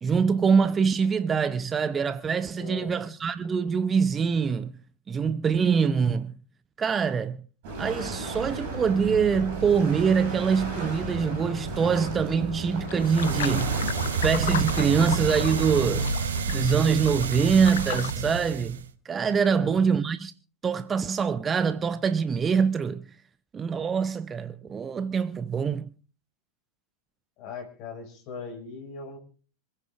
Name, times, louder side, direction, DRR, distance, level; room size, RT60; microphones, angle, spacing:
voice 1, 0.0-4.7 5.1-6.3 6.8-7.4 7.8-13.7 14.2-16.1 16.5-18.8 19.0-20.3 20.6-23.0 23.5-25.9, right 6 dB, 20° right, 0.6 m, -24 dB
voice 2, 2.5-3.0 19.5-19.7 27.4-29.2, left 4 dB, 40° left, 5.7 m, -39 dB
sound 1, 7.6-16.1, right 2 dB, 50° right, 6.5 m, -34 dB
sound 2, 12.9-18.1, left 10 dB, 60° left, 0.6 m, -36 dB
sound 3, 13.0-18.9, right 5 dB, 65° right, 1.1 m, -29 dB
27.0 x 15.5 x 2.5 m
figure-of-eight pair, 90°, 0 cm